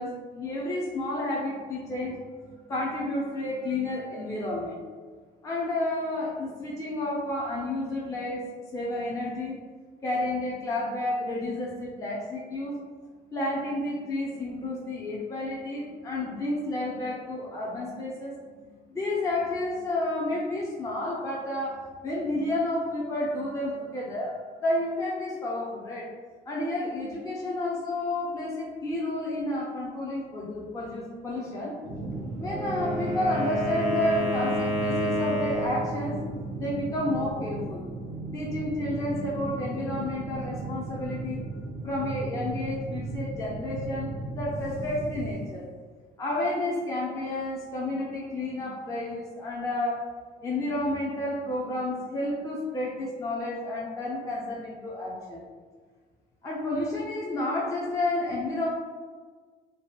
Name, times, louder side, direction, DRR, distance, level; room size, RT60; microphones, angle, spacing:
voice 1, 0.0-4.8 5.4-8.4 8.7-9.6 10.0-12.7 13.3-18.3 18.9-21.8 22.0-24.3 24.6-26.1 26.5-31.7 32.4-36.2 36.6-37.9 38.3-41.5 41.8-45.6 46.2-50.0 50.4-55.4 56.4-58.7, left 1 dB, 20° left, -4 dB, 0.4 m, -31 dB
sound 1, 31.8-45.3, right 2 dB, 85° right, 0.6 m, -36 dB
Wind instrument woodwind instrument, 32.4-36.0, equal, 60° left, 1.2 m, -29 dB
2.6 x 2.1 x 2.3 m, 1.5 s
cardioid pair, 110°, 17 cm